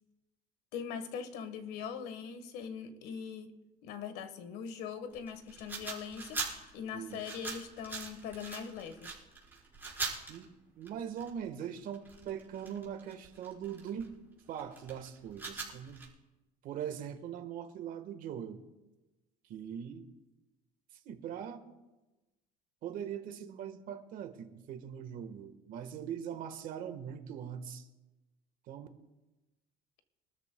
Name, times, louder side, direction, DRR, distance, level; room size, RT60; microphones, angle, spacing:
voice 1, 0.7-3.6 3.8-9.1, left 7 dB, 75° left, 1.4 m, -41 dB
sound 1, 5.2-10.4 10.9-14.1 14.6-16.1, right 4 dB, 10° right, 4.5 m, -41 dB
voice 2, 6.9-7.3 10.3-14.1 14.5-16.0 16.6-18.6 19.5-20.1 20.9-21.6 22.8-27.9 28.7-28.9, right 8 dB, 55° right, 1.4 m, -41 dB
25.5 x 13.0 x 2.3 m
cardioid pair, 140°, 16 cm